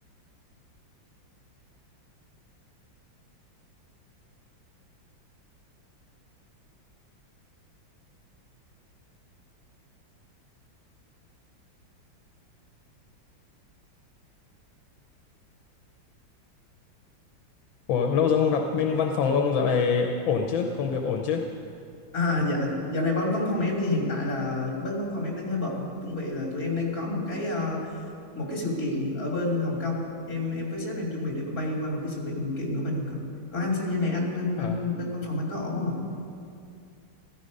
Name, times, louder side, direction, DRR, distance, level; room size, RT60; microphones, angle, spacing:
voice 1, 17.9-21.4 34.6-35.0, left 6 dB, 80° left, 3 dB, 1.6 m, -24 dB
voice 2, 22.1-27.9 28.3-33.2 33.5-36.0, left 2 dB, 45° left, -1 dB, 3.3 m, -29 dB
15.0 x 14.5 x 5.3 m, 2.4 s
omnidirectional pair, 2.1 m